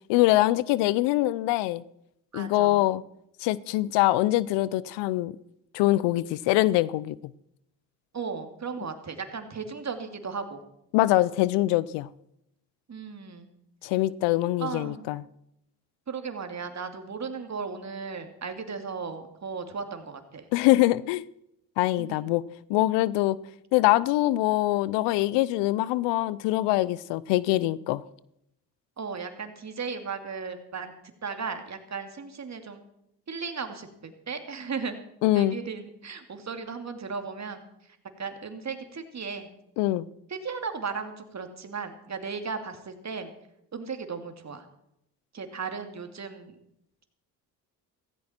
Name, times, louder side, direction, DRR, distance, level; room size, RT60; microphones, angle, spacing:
voice 1, 0.1-1.8 2.3-3.0 3.4-5.3 5.7-7.2 10.9-12.1 13.8-15.2 20.5-21.2 21.8-22.4 22.7-23.4 23.7-28.0 35.2-35.6 39.8-40.1, left 17 dB, 80° left, 0.6 m, -23 dB
voice 2, 2.3-2.9 8.1-10.6 12.9-13.5 14.6-15.1 16.1-20.5 22.0-22.2 29.0-30.9 31.2-32.8 33.3-35.0 35.3-37.6 38.2-39.5 40.3-43.3 43.7-44.6 45.3-46.5, right 5 dB, 40° right, 2.5 m, -36 dB
16.0 x 15.0 x 4.4 m
supercardioid pair, 60°, 42 cm